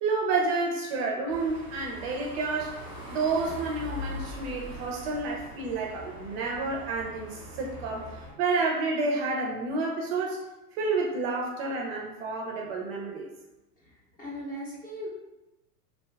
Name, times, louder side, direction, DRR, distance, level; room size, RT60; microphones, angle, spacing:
voice 1, 0.0-2.7 3.1-8.1 8.4-10.4 10.7-13.3, right 3 dB, 45° right, 0 dB, 0.4 m, -30 dB
sound 1, 1.3-8.3, left 1 dB, 10° right, 0.9 m, -42 dB
voice 2, 14.2-15.1, equal, 20° left, -5 dB, 0.5 m, -38 dB
2.6 x 2.2 x 3.1 m, 1.0 s
supercardioid pair, 135°, 46 cm